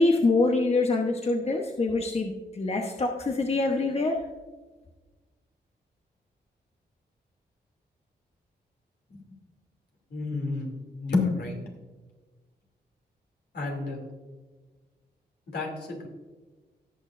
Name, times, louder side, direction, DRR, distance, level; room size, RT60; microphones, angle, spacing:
voice 1, 0.0-4.2, left 3 dB, 35° left, 2 dB, 1.0 m, -25 dB
voice 2, 10.1-10.7 11.0-11.6 13.5-14.0 15.5-16.1, left 3 dB, 70° left, 0 dB, 2.8 m, -29 dB
17.5 x 6.3 x 2.6 m, 1.3 s
cardioid pair, 65°, 17 cm